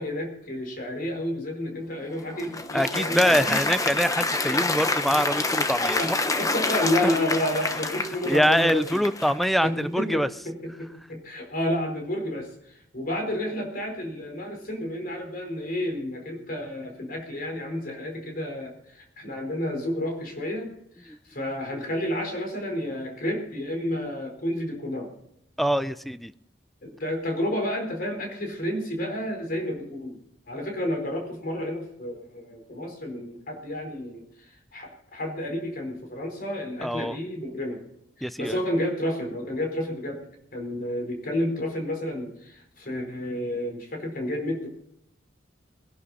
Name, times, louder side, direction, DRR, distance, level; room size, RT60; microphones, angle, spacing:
voice 1, 0.0-3.6 6.0-9.0 9.6-20.7 21.0-25.1 26.8-30.2 30.5-37.8 38.2-40.2 40.5-44.7, left 1 dB, 50° left, 3 dB, 4.4 m, -31 dB
Applause, 2.0-9.6, left 3 dB, 20° left, 1.0 m, -28 dB
voice 2, 2.7-6.0 7.0-7.1 8.3-10.3 21.1-21.2 25.6-26.3 36.8-37.2 38.2-38.6, equal, ahead, 14 dB, 0.5 m, -24 dB
20.5 x 11.5 x 4.2 m, 0.75 s
head